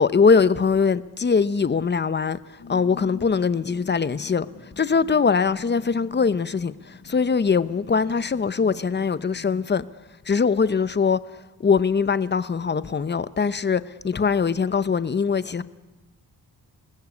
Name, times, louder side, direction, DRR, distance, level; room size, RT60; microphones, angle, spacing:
voice 1, 0.0-2.4 2.7-4.5 4.8-9.9 10.3-11.2 11.6-15.6, left 5 dB, 25° left, 0.8 m, -22 dB
sound 1, 2.6-9.6, left 3 dB, 40° left, 4.9 m, -45 dB
28.5 x 20.0 x 8.4 m
wide cardioid pair, 165°, 40 cm